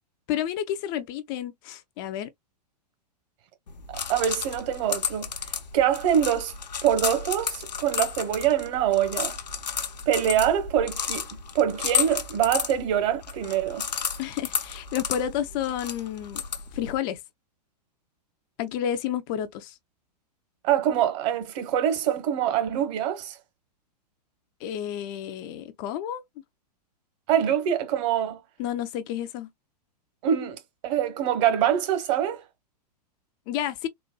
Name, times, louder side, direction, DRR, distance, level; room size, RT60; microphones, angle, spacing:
voice 1, 0.3-2.3 14.2-16.4 16.7-17.2 18.6-19.7 24.6-26.2 28.6-29.5 33.5-33.9, left 10 dB, 35° left, 0.4 m, -30 dB
sound 1, 3.7-17.0, left 7 dB, 80° left, 0.7 m, -32 dB
voice 2, 3.9-5.3 5.7-6.5 6.8-9.3 10.1-11.2 11.5-13.9 20.6-23.4 27.3-28.4 30.2-32.4, right 10 dB, 45° right, 1.0 m, -24 dB
4.0 x 2.2 x 2.2 m
figure-of-eight pair, 105°, 21 cm